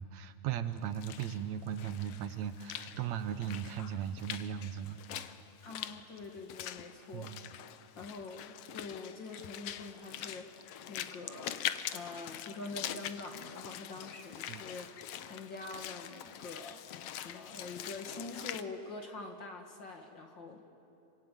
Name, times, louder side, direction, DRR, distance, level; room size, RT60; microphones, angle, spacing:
voice 1, 0.0-5.4 7.1-7.5 14.5-14.6, right 9 dB, 75° right, 10 dB, 2.1 m, -38 dB
Walk footsteps / Splash splatter, 0.8-18.6, left 11 dB, 70° left, 1.5 m, -44 dB
voice 2, 5.6-7.3 7.6-11.6 11.9-16.8 17.2-20.7, left 3 dB, 45° left, 4 dB, 1.9 m, -45 dB
26.5 x 24.5 x 9.1 m, 2.8 s
omnidirectional pair, 3.4 m